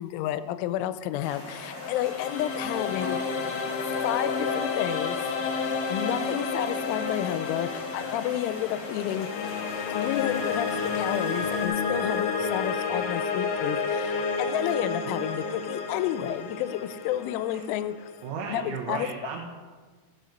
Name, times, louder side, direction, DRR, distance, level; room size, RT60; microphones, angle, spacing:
voice 1, 0.0-3.2 3.8-5.2 5.9-9.3 9.9-17.9 18.5-19.1, left 12 dB, 85° left, 13 dB, 3.0 m, -31 dB
sound 1, 1.2-11.7, left 1 dB, 40° left, 2.3 m, -42 dB
sound 2, 1.5-18.6, left 5 dB, 70° left, 2.6 m, -30 dB
voice 2, 18.2-19.4, right 6 dB, 75° right, -1 dB, 3.1 m, -34 dB
13.0 x 8.0 x 5.1 m, 1.5 s
omnidirectional pair, 5.4 m